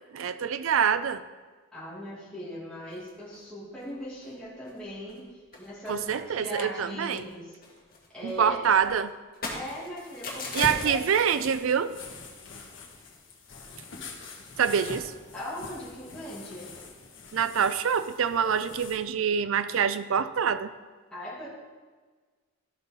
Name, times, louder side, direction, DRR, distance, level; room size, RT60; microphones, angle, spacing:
voice 1, 0.1-1.2 5.9-7.3 8.2-9.1 10.5-11.9 14.6-15.1 17.3-20.7, right 7 dB, 80° right, 13 dB, 0.4 m, -25 dB
voice 2, 1.7-7.6 8.1-8.7 9.5-11.0 15.3-16.7 21.1-21.5, equal, 5° left, -9 dB, 1.8 m, -39 dB
sound 1, 2.9-3.4 3.8-3.9 4.2-4.4 4.6-5.2 5.5-6.9 7.2-11.6, left 3 dB, 45° left, 1.7 m, -41 dB
sound 2, 10.0-19.0, left 3 dB, 70° left, 1.3 m, -44 dB
12.5 x 5.5 x 4.1 m, 1.4 s
head